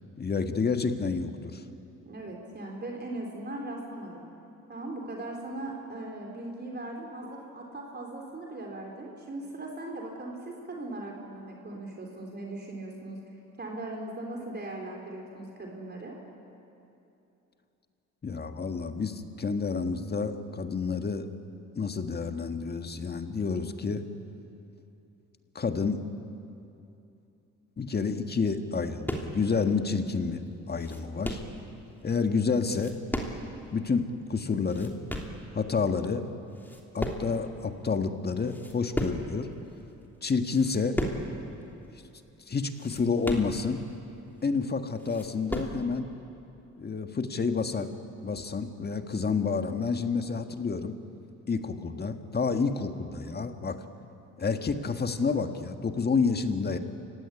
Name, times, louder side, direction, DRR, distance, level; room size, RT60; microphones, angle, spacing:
voice 1, 0.2-1.6 18.2-21.3 21.7-24.1 25.5-26.1 27.8-31.4 32.0-33.0 33.7-34.9 35.5-36.3 36.9-39.5 40.2-41.0 42.5-43.8 44.4-46.1 46.8-47.9 48.2-51.0 51.5-53.8 54.4-56.8, left 5 dB, 35° left, 7 dB, 1.7 m, -29 dB
voice 2, 2.1-4.2 4.7-13.2 13.6-16.1, right 2 dB, 35° right, 0 dB, 4.1 m, -39 dB
sound 1, 29.0-29.5 30.0-30.1 30.5-31.6 32.6-33.6 33.9-34.0 34.5-35.4 36.0-36.3 36.5-37.6 37.9-38.0 38.3-39.4 39.9-40.1 40.5-41.4 41.6-41.7 42.1-42.2 42.6-43.9 44.4-44.5 44.8-45.8, equal, 5° left, 3.1 m, -35 dB
27.5 x 16.5 x 10.0 m, 2.8 s
cardioid pair, 90°, 30 cm